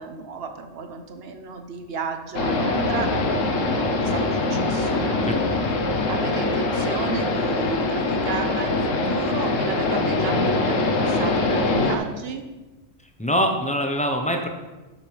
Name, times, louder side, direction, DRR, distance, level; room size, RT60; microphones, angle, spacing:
voice 1, 0.0-3.2 3.4-5.1 6.1-12.5, right 5 dB, 55° right, 6 dB, 1.0 m, -34 dB
sound 1, 2.3-12.0, left 2 dB, 80° left, 1.3 m, -23 dB
voice 2, 13.2-14.5, equal, 5° left, 3 dB, 0.7 m, -23 dB
12.0 x 6.7 x 3.3 m, 1.1 s
omnidirectional pair, 1.3 m